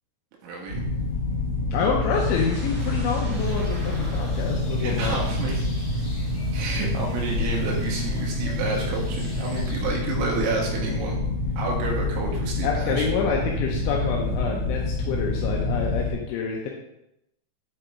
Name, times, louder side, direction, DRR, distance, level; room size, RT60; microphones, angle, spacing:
voice 1, 0.4-0.8 4.8-5.9 6.5-11.2 11.6-13.1, right 3 dB, 75° right, -1 dB, 3.1 m, -30 dB
sound 1, 0.7-16.1, left 2 dB, 65° left, 2.9 m, -27 dB
voice 2, 1.7-5.2 12.6-16.7, left 5 dB, 85° left, -1 dB, 2.6 m, -27 dB
sound 2, 2.1-6.1, right 1 dB, 55° right, 2.4 m, -43 dB
sound 3, 3.3-9.9, right 2 dB, 40° left, 1.5 m, -38 dB
7.9 x 3.8 x 3.4 m, 0.82 s
omnidirectional pair, 5.9 m